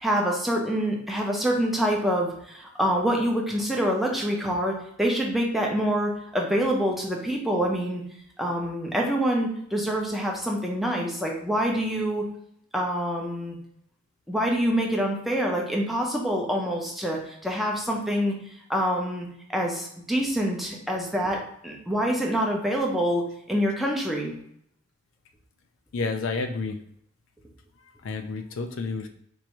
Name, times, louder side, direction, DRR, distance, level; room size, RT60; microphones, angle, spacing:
voice 1, 0.0-8.0 8.4-12.3 12.7-13.6 14.3-24.3, equal, ahead, -1 dB, 0.6 m, -26 dB
voice 2, 25.9-26.8 28.0-29.1, left 4 dB, 70° left, 6 dB, 0.4 m, -30 dB
4.4 x 2.6 x 3.0 m, 0.69 s
head